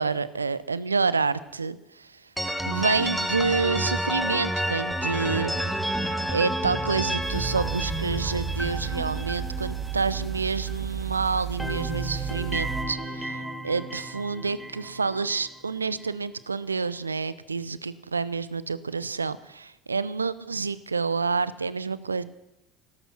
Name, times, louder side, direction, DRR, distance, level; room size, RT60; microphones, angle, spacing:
voice 1, 0.0-2.1 2.7-5.5 6.3-22.2, right 4 dB, 85° right, 17 dB, 0.5 m, -28 dB
sound 1, 2.4-11.1 11.4-15.5, right 1 dB, ahead, 2.0 m, -31 dB
sound 2, 7.2-12.8, right 8 dB, 20° right, 3.2 m, -33 dB
16.0 x 13.5 x 6.0 m, 0.90 s
figure-of-eight pair, 65°, 0 cm